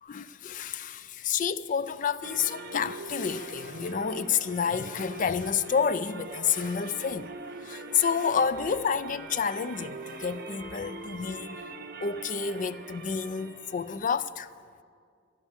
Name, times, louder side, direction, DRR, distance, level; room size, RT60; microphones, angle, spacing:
voice 1, 0.0-7.3 7.6-11.6 12.0-14.5, left 6 dB, 40° left, 0.4 m, -29 dB
sound 1, 2.2-14.1, right 3 dB, 50° right, 0.9 m, -42 dB
15.0 x 11.5 x 7.2 m
head